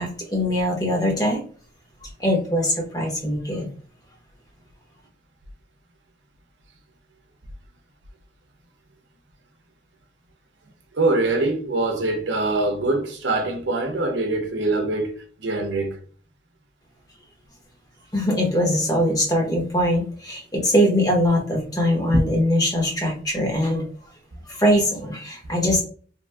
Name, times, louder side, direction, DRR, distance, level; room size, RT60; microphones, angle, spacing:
voice 1, 0.0-1.4 2.2-3.7 18.1-23.8 24.5-25.8, equal, 20° left, 0.8 m, -22 dB
voice 2, 10.9-16.0, right 2 dB, 75° right, 0.7 m, -24 dB
2.9 x 2.6 x 2.2 m
head